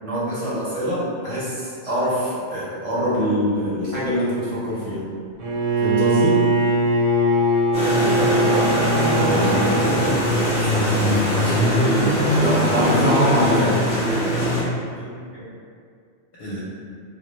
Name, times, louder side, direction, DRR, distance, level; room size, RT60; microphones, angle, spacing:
voice 1, 0.0-5.0 5.8-6.4 12.4-13.7, equal, 40° right, -10 dB, 0.5 m, -23 dB
Bowed string instrument, 5.4-10.2, right 1 dB, 85° right, 0.9 m, -20 dB
Land Rover Muddy road water, 7.7-14.6, equal, 5° left, 0.7 m, -21 dB
voice 2, 9.1-13.7 14.9-15.5 16.4-16.6, right 1 dB, 60° left, -9 dB, 0.7 m, -30 dB
2.0 x 2.0 x 3.0 m, 2.2 s
omnidirectional pair, 1.3 m